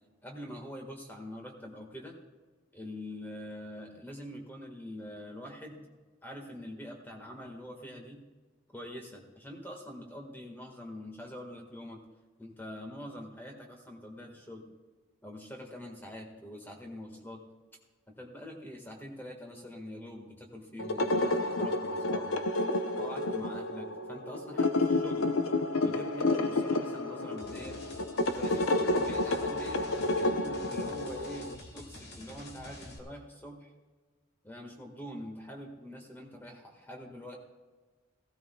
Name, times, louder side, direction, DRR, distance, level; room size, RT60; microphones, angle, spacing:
voice 1, 0.2-2.2 2.7-5.9 6.2-8.2 8.7-12.0 12.4-14.7 15.2-17.4 18.1-22.4 23.0-25.3 25.8-27.8 28.4-33.7 34.4-37.4, equal, 10° left, 1 dB, 1.5 m, -44 dB
sound 1, 20.8-31.5, left 2 dB, 85° left, 0.7 m, -30 dB
sound 2, 27.4-33.0, left 1 dB, 50° left, 1.7 m, -48 dB
15.5 x 15.5 x 2.3 m, 1.3 s
head